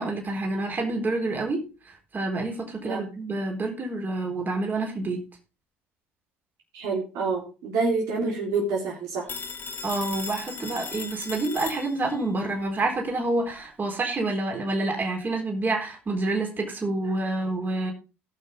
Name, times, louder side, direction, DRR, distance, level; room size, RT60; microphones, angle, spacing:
voice 1, 0.0-1.6 2.1-5.2 9.8-17.9, right 2 dB, 30° right, 2 dB, 3.9 m, -28 dB
voice 2, 6.7-9.3, right 3 dB, 70° right, -2 dB, 3.5 m, -27 dB
Telephone, 9.3-12.3, left 5 dB, 35° left, 2.4 m, -37 dB
18.0 x 6.0 x 3.5 m, 0.31 s
hypercardioid pair, 70°, 6 cm